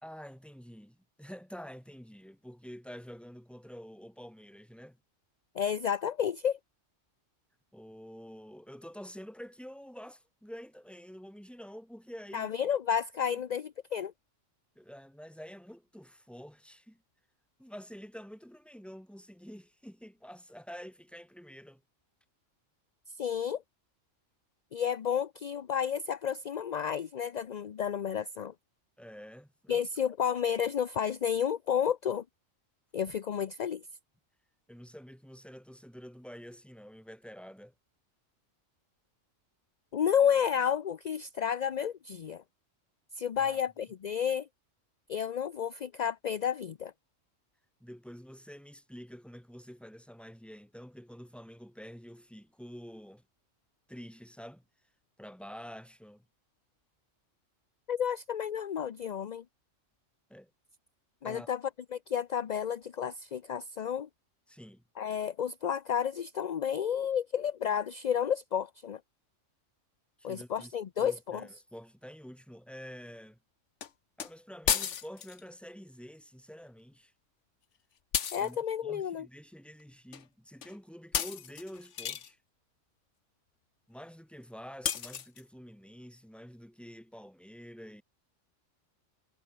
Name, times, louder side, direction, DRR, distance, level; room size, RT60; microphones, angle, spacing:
voice 1, 0.0-5.0 7.7-12.5 13.3-13.4 14.8-17.0 17.6-21.8 29.0-29.9 34.7-37.7 43.4-43.6 47.8-53.2 53.9-54.6 55.2-56.3 60.3-60.5 61.2-61.5 64.5-64.8 70.2-73.4 74.2-77.1 78.4-78.6 78.8-82.4 83.9-88.0, equal, ahead, 2.7 m, -48 dB
voice 2, 5.6-6.6 12.3-14.1 23.2-23.6 24.7-28.5 29.7-32.2 32.9-33.8 39.9-42.4 43.2-44.5 45.1-46.9 57.9-59.4 61.2-61.6 61.9-64.1 65.0-69.0 70.2-71.4 78.3-79.3, left 8 dB, 45° left, 0.6 m, -31 dB
sound 1, 73.8-73.9 74.2-74.3 74.7-75.4 78.1-78.5 80.1-80.2 80.6-80.8 81.1-82.3 84.9-85.4, left 8 dB, 70° left, 1.4 m, -33 dB
omnidirectional pair, 1.3 m